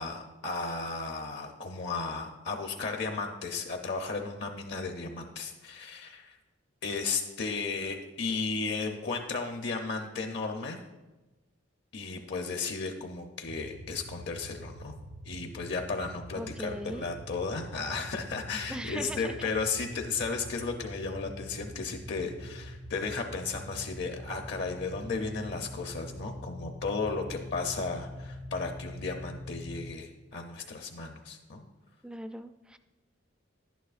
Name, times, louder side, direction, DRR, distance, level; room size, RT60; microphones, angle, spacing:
voice 1, 0.0-6.4 6.8-10.8 11.9-14.9 15.2-31.6, left 4 dB, 60° left, 4 dB, 0.6 m, -34 dB
sound 1, 13.5-29.9, equal, 65° right, 1.0 m, -44 dB
voice 2, 16.4-17.1 18.7-19.3 32.0-32.8, equal, 5° right, 9 dB, 0.3 m, -39 dB
11.0 x 9.2 x 2.4 m, 1.1 s
head